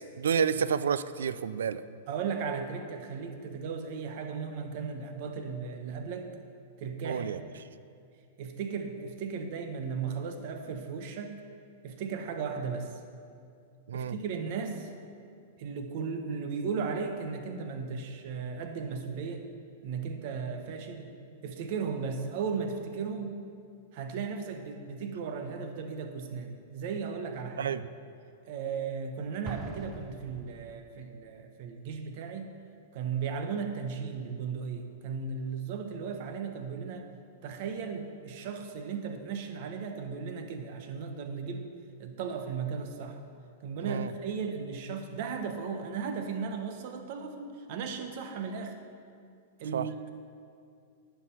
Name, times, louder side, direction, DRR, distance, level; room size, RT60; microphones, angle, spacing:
voice 1, 0.0-1.8 7.0-7.4 13.9-14.2 27.6-27.8 43.9-44.1 49.7-49.9, right 7 dB, 85° right, 15 dB, 0.3 m, -29 dB
voice 2, 2.1-6.3 6.8-7.5 8.4-11.4 11.8-13.0 13.9-14.9 15.6-19.4 19.8-21.1 21.4-23.4 23.9-27.7 28.5-32.6 32.9-37.1 37.4-41.7 42.0-43.2 43.6-48.8 49.6-50.1, right 5 dB, 55° right, 6 dB, 1.0 m, -36 dB
Explosion, 29.4-31.0, right 5 dB, 30° right, 0.7 m, -42 dB
9.7 x 5.8 x 5.7 m, 2.4 s
hypercardioid pair, 125°, 0 cm